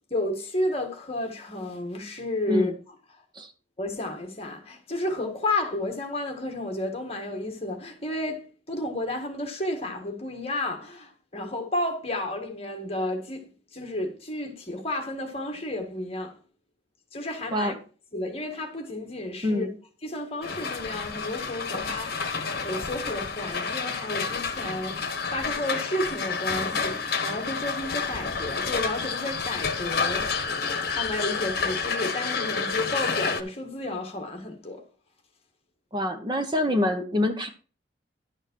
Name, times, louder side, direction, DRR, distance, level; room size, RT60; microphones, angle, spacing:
voice 1, 0.1-2.7 3.8-16.4 17.1-17.7 18.1-19.7 20.0-30.5 30.8-34.8, left 1 dB, 30° left, 1.7 m, -32 dB
voice 2, 19.4-19.7 35.9-37.5, left 1 dB, 25° right, 1.0 m, -26 dB
sound 1, 20.4-33.4, left 5 dB, 55° left, 1.3 m, -29 dB
11.5 x 6.4 x 4.6 m
head